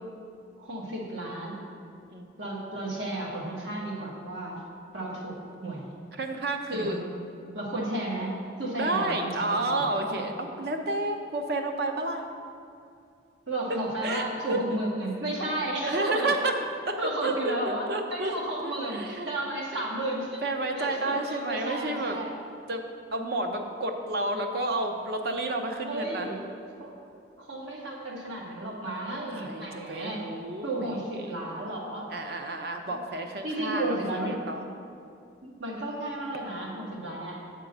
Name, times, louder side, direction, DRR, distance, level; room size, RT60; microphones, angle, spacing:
voice 1, 0.6-1.6 2.4-4.6 4.9-5.4 5.6-5.9 6.7-7.0 7.5-10.3 13.5-16.3 17.0-20.4 20.7-22.3 25.8-26.4 26.8-26.9 27.4-30.3 30.6-32.1 33.4-34.4 35.4-37.4, right 1 dB, 80° right, -3 dB, 1.5 m, -33 dB
voice 2, 6.2-7.0 8.0-8.2 8.8-12.2 14.0-14.2 14.5-14.6 15.9-16.6 16.9-18.3 18.6-19.3 20.4-22.2 22.7-22.8 23.1-26.3 29.3-31.4 32.1-34.6, right 2 dB, 55° right, 4 dB, 0.7 m, -30 dB
7.9 x 3.7 x 6.6 m, 2.5 s
head